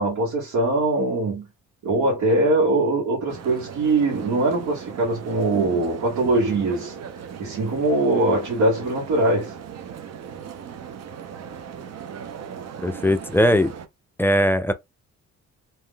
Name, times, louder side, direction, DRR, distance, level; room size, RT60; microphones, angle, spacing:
voice 1, 0.0-1.5 1.8-6.9 7.4-9.5, right 2 dB, 80° right, 1.4 m, -22 dB
sound 1, 3.3-13.9, right 8 dB, 60° right, 0.7 m, -38 dB
voice 2, 12.8-13.7 14.2-14.7, equal, 5° left, 0.4 m, -19 dB
3.6 x 2.6 x 2.2 m
cardioid pair, 90°, 30 cm